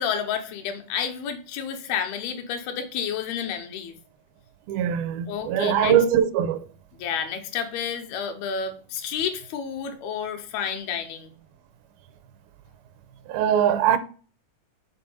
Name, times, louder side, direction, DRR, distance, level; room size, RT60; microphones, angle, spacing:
voice 1, 0.0-3.9 5.3-6.0 6.9-11.3, left 7 dB, 90° left, 2.9 m, -30 dB
voice 2, 4.7-6.6 13.3-14.0, right 9 dB, 80° right, 2.4 m, -21 dB
7.1 x 4.3 x 5.4 m
omnidirectional pair, 4.3 m